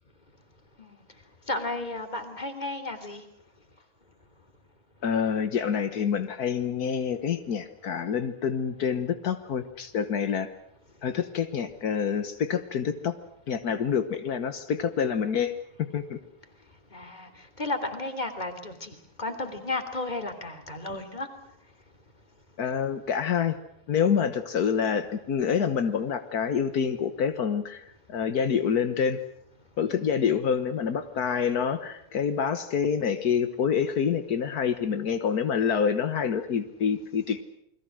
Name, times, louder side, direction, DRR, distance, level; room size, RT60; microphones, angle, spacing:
voice 1, 1.5-3.2 16.9-17.3 17.6-21.3, left 2 dB, 15° left, 8 dB, 3.0 m, -33 dB
voice 2, 5.0-10.5 11.0-13.2 13.5-15.6 15.9-16.2 22.6-23.6 23.9-29.2 29.8-37.4, left 7 dB, 70° left, 10 dB, 0.8 m, -27 dB
29.0 x 22.0 x 6.4 m, 0.76 s
omnidirectional pair, 3.3 m